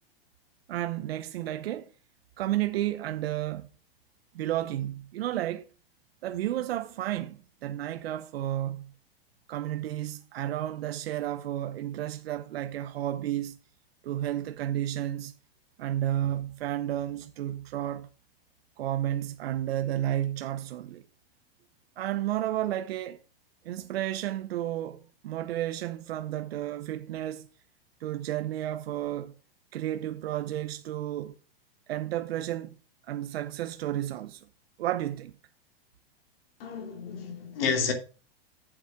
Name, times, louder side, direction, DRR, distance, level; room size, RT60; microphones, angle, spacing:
voice 1, 0.7-1.9 2.4-3.7 4.3-5.6 6.2-8.9 9.5-13.6 14.0-15.3 15.8-18.1 18.8-21.0 22.0-23.2 23.6-27.5 28.0-29.3 29.7-31.3 31.9-32.8 33.1-34.5 34.8-35.3, right 13 dB, 80° right, 0.9 m, -32 dB
voice 2, 36.6-37.9, left 6 dB, 70° left, 2.8 m, -30 dB
8.5 x 7.1 x 5.0 m
supercardioid pair, 135°, 30 cm